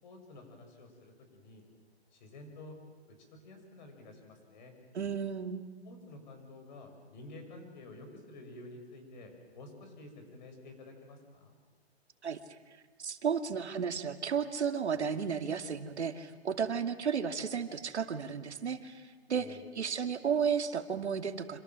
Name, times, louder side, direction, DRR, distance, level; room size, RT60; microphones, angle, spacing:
voice 1, 0.0-1.6 2.1-2.8 3.1-4.7 5.8-11.6 19.3-19.7, left 2 dB, 45° left, 6 dB, 6.9 m, -50 dB
voice 2, 4.9-5.6 12.2-12.4 13.0-19.4 19.8-21.6, right 7 dB, 90° right, 7 dB, 2.6 m, -33 dB
27.0 x 27.0 x 7.6 m, 1.5 s
hypercardioid pair, 160°, 33 cm